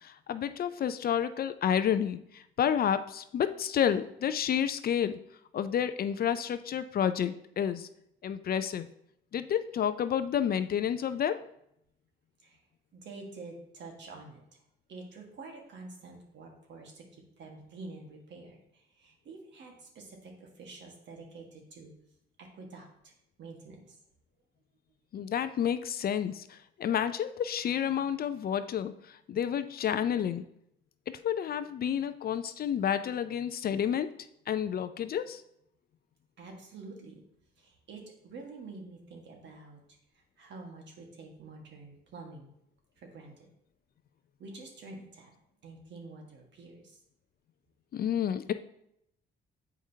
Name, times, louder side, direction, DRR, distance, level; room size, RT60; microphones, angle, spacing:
voice 1, 0.0-5.2 5.5-7.9 8.2-8.9 9.3-11.4 25.1-28.9 29.3-30.5 31.1-34.1 34.5-35.4 47.9-48.5, left 9 dB, 50° left, 12 dB, 0.4 m, -30 dB
voice 2, 12.9-14.6 14.9-21.9 22.4-23.1 23.4-24.0 36.4-37.2 37.6-39.8 40.1-42.5 43.0-43.5 44.4-45.3 45.6-47.0, right 3 dB, 65° right, 2 dB, 1.6 m, -48 dB
7.7 x 4.9 x 2.8 m, 0.76 s
cardioid pair, 90°, 20 cm